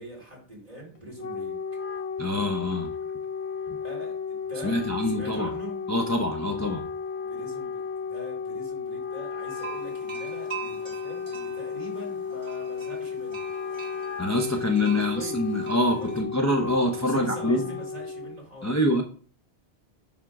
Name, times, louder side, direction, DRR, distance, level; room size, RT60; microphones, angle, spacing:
voice 1, 0.0-1.6 3.7-5.9 7.1-13.4 14.8-15.4 16.0-16.2 17.0-18.8, equal, 40° right, -3 dB, 3.2 m, -43 dB
Wind instrument woodwind instrument, 1.0-18.4, left 5 dB, 90° left, 1.2 m, -34 dB
voice 2, 2.2-2.9 4.6-5.5 5.9-6.8 14.2-17.7 18.6-19.0, left 1 dB, 20° left, 2 dB, 0.7 m, -25 dB
sound 1, 9.5-16.2, right 7 dB, 55° right, 1.9 m, -43 dB
7.2 x 3.6 x 5.9 m, 0.42 s
omnidirectional pair, 1.1 m